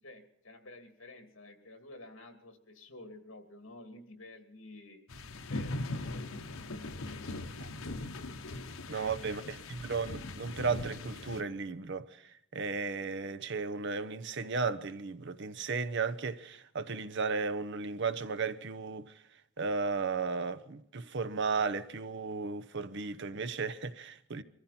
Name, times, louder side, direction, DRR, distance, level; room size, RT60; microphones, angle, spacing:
voice 1, 0.0-5.0 5.5-6.5 6.9-7.6 8.6-9.6, left 1 dB, 65° left, 2.7 m, -51 dB
sound 1, 5.1-11.4, left 2 dB, 80° left, 1.0 m, -40 dB
voice 2, 8.9-9.4 9.7-12.2 12.5-19.1 19.6-24.4, right 4 dB, 60° right, 0.8 m, -35 dB
23.0 x 14.5 x 4.3 m
head